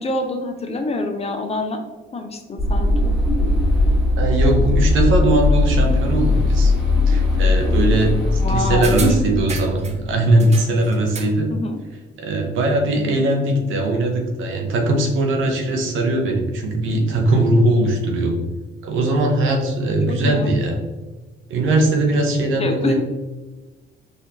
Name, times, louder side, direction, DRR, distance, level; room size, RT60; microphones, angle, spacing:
voice 1, 0.0-1.8 2.1-3.1 8.4-9.2 11.5-11.8 20.1-20.5 22.6-23.0, left 2 dB, 30° left, 5 dB, 0.5 m, -25 dB
sound 1, 2.6-10.0, left 2 dB, ahead, 1.3 m, -19 dB
voice 2, 4.2-6.7 7.1-11.5 12.2-18.4 18.8-20.8 21.5-23.0, right 2 dB, 80° right, 2 dB, 0.7 m, -20 dB
sound 2, 8.8-10.0 10.4-11.4 11.7-11.8, right 4 dB, 35° right, 0.5 m, -33 dB
4.1 x 2.6 x 2.8 m, 1.2 s
cardioid pair, 90°, 20 cm